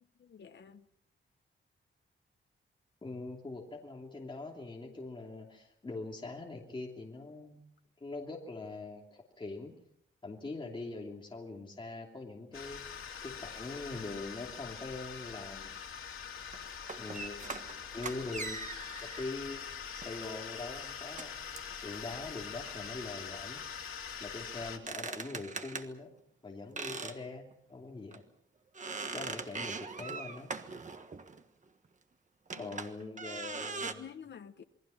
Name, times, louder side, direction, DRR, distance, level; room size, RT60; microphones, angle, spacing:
voice 1, 0.2-0.9 32.5-32.8 33.5-34.6, left 7 dB, 60° left, 1.2 m, -50 dB
voice 2, 3.0-7.7 8.0-9.7 10.2-12.9 13.2-15.7 17.0-18.7 19.0-21.4 21.8-23.6 24.2-26.1 26.4-28.2 29.1-30.5 32.6-34.0, left 3 dB, 25° left, 2.9 m, -43 dB
sound 1, 12.5-24.8, left 7 dB, 90° left, 3.0 m, -44 dB
sound 2, 16.5-19.2 20.0-20.3 21.2-21.3 21.6-21.7 24.6-25.9 26.8-27.2 27.5-27.6 28.1-28.2 28.7-31.4 32.5-33.9, right 4 dB, 35° right, 1.5 m, -41 dB
27.5 x 22.0 x 5.8 m
wide cardioid pair, 175°, 21 cm